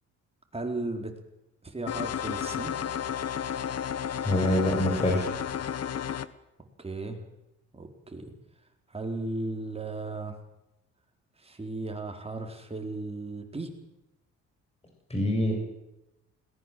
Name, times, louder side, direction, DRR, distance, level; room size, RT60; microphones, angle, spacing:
voice 1, 0.5-1.1 1.6-2.7 6.8-7.2 7.7-8.3 8.9-10.3 11.4-13.7, right 2 dB, 20° right, 3 dB, 4.5 m, -35 dB
sound 1, 1.9-6.3, left 8 dB, 55° left, 1.2 m, -32 dB
voice 2, 4.2-5.3 15.1-15.5, left 1 dB, 20° left, 1 dB, 7.2 m, -25 dB
21.5 x 19.5 x 7.8 m, 0.92 s
cardioid pair, 90°, 30 cm